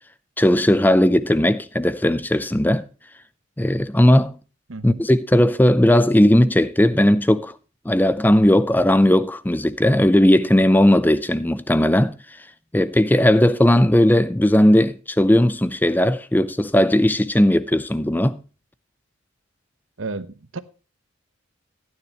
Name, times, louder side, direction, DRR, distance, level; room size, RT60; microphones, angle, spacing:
voice 1, 0.4-2.9 3.6-4.4 4.8-7.5 7.9-12.1 12.7-18.4, left 1 dB, 10° left, 0.5 m, -17 dB
voice 2, 4.7-5.0 20.0-20.6, right 3 dB, 70° right, 0.9 m, -32 dB
15.5 x 9.5 x 3.0 m
head